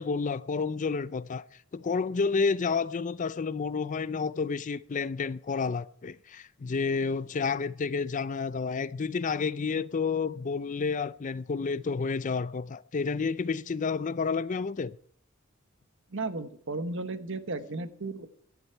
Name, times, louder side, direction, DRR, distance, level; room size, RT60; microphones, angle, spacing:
voice 1, 0.0-1.4 1.7-15.0, left 5 dB, 40° left, 0.4 m, -30 dB
voice 2, 16.1-18.3, right 3 dB, 65° right, 1.1 m, -34 dB
16.5 x 11.0 x 4.5 m
head